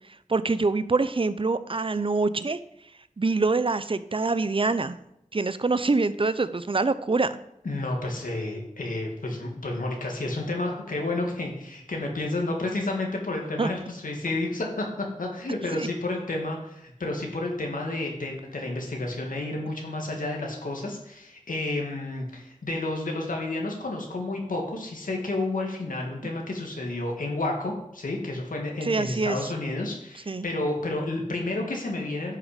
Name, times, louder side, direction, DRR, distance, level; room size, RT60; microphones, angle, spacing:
voice 1, 0.3-2.6 3.2-5.0 5.3-7.3 13.6-13.7 15.7-15.9 26.2-26.3 28.8-29.5 30.3-30.5, right 3 dB, 40° right, 14 dB, 0.6 m, -25 dB
voice 2, 7.6-14.9 15.2-32.4, left 2 dB, 85° left, 1 dB, 1.9 m, -31 dB
10.5 x 6.1 x 5.0 m, 0.80 s
wide cardioid pair, 55°, 14 cm